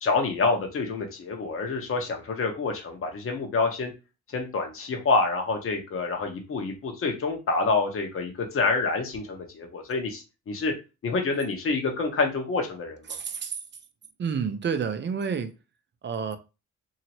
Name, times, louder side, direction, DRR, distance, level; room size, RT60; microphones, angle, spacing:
voice 1, 0.0-3.9 4.3-10.7 11.0-13.0, left 3 dB, 45° left, 1.0 m, -27 dB
voice 2, 13.1-13.6 14.2-15.5 16.0-16.4, right 6 dB, 40° right, 0.6 m, -29 dB
2.8 x 2.8 x 2.9 m
cardioid pair, 90°, 30 cm